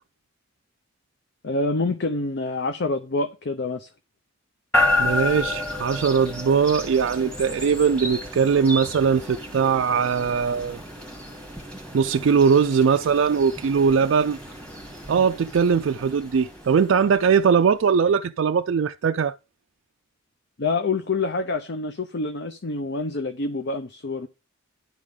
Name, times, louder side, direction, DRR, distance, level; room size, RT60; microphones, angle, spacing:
voice 1, 1.4-3.9 20.6-24.3, left 3 dB, 55° left, 0.7 m, -27 dB
sound 1, 4.7-17.7, left 2 dB, 5° left, 1.5 m, -31 dB
voice 2, 5.0-10.8 11.9-14.4 15.1-19.4, right 6 dB, 60° right, 0.3 m, -20 dB
10.5 x 3.7 x 6.5 m
head